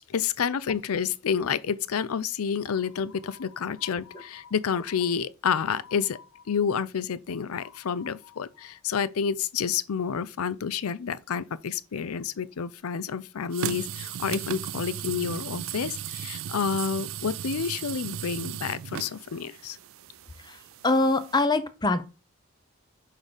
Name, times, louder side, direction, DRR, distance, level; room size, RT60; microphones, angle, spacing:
voice 1, 0.1-19.8, left 7 dB, 90° left, 0.5 m, -29 dB
sound 1, 13.5-21.4, right 10 dB, 70° right, 0.4 m, -36 dB
voice 2, 20.8-22.1, left 2 dB, 20° left, 0.6 m, -23 dB
6.3 x 3.7 x 5.1 m
head